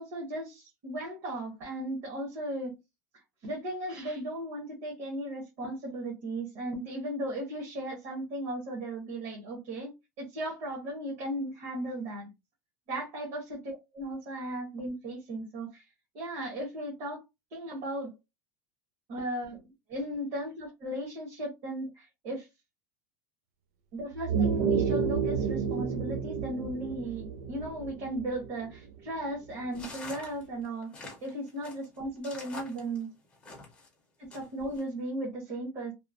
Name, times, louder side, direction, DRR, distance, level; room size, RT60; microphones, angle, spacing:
voice 1, 0.0-2.8 3.4-12.3 12.9-15.8 16.1-17.2 17.5-18.1 19.1-22.5 23.9-30.9 31.2-33.1 34.2-35.9, right 1 dB, 45° right, 1.1 m, -36 dB
sound 1, 24.1-29.0, right 6 dB, 60° right, 0.4 m, -30 dB
sound 2, 29.7-33.9 34.3-34.8, left 3 dB, 10° left, 0.7 m, -45 dB
2.9 x 2.0 x 2.5 m
supercardioid pair, 175°, 9 cm